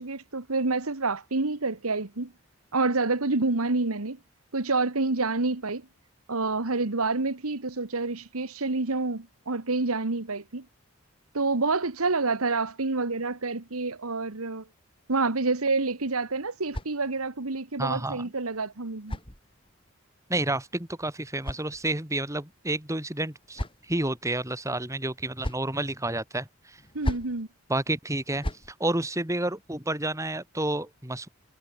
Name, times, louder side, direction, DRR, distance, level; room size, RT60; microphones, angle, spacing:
voice 1, 0.0-2.3 2.7-4.2 4.5-5.9 6.3-10.6 11.3-14.7 15.1-19.2 26.9-27.5, right 3 dB, 90° right, 1.6 m, -28 dB
sound 1, 15.8-17.5 18.5-19.9 20.9-22.2 23.1-24.1 25.0-25.8 26.8-27.4 28.2-28.7, equal, 25° left, 5.3 m, -38 dB
voice 2, 17.8-18.2 20.3-23.6 23.9-26.8 27.7-28.4 28.8-31.3, right 1 dB, 15° right, 2.7 m, -30 dB
head